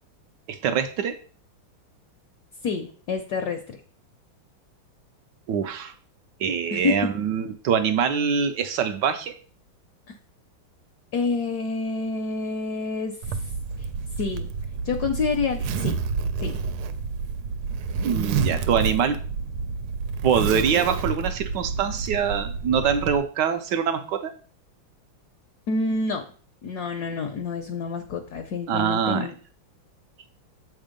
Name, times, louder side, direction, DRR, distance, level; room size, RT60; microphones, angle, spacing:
voice 1, 0.5-1.2 5.5-5.9 6.4-9.3 18.0-19.2 20.2-24.3 28.7-29.3, right 7 dB, 75° right, 9 dB, 1.1 m, -24 dB
voice 2, 2.6-3.8 6.7-7.1 11.1-13.2 13.8-13.9 14.2-14.5 14.8-16.0 16.4-16.6 25.7-26.2 26.6-29.3, left 4 dB, 65° left, 7 dB, 1.0 m, -28 dB
Zipper (clothing), 13.2-23.2, right 5 dB, 90° right, 1.5 m, -29 dB
7.4 x 3.5 x 5.1 m, 0.42 s
omnidirectional pair, 2.3 m